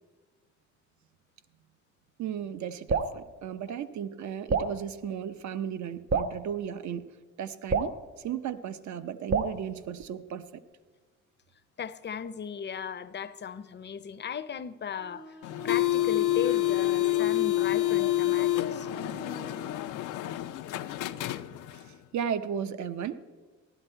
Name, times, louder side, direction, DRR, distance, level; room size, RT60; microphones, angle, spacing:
voice 1, 2.2-7.0 7.4-7.9 8.2-10.6 22.1-23.2, right 8 dB, 70° right, 0.7 m, -35 dB
Drip, 2.9-3.2 4.5-4.8 6.1-6.4 7.7-8.0 9.3-9.6, right 4 dB, 35° right, 0.6 m, -27 dB
voice 2, 11.8-15.4 15.6-18.9, left 7 dB, 35° left, 0.6 m, -37 dB
Bowed string instrument, 15.0-19.9, right 3 dB, 85° right, 1.9 m, -46 dB
sound 1, 15.4-21.9, left 15 dB, 85° left, 0.6 m, -28 dB
15.0 x 12.0 x 4.4 m
cardioid pair, 90°, 30 cm